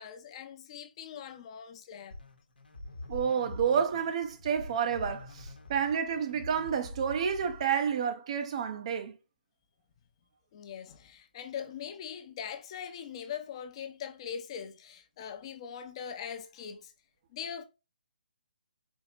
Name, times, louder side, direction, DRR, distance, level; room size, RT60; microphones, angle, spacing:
voice 1, 0.0-2.1 10.5-16.9 17.3-17.6, left 8 dB, 35° left, 0.5 m, -41 dB
sound 1, 2.1-7.9, left 2 dB, 80° left, 0.9 m, -45 dB
voice 2, 3.1-9.1, right 7 dB, 40° right, 0.5 m, -30 dB
4.5 x 2.8 x 2.5 m
figure-of-eight pair, 140°, 5 cm